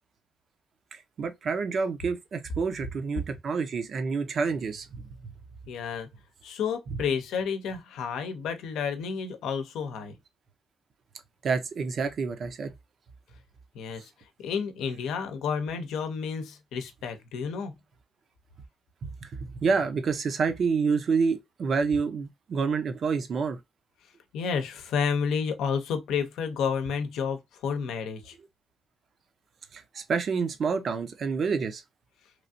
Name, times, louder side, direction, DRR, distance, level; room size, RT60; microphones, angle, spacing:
voice 1, 0.9-5.1 6.9-7.0 11.4-12.7 19.0-23.6 29.7-31.8, right 5 dB, 55° right, 0.6 m, -28 dB
voice 2, 5.7-6.1 6.4-10.1 13.7-14.1 14.4-17.7 24.3-28.3, left 6 dB, 85° left, 0.6 m, -30 dB
3.1 x 2.4 x 2.6 m
cardioid pair, 90°, 0 cm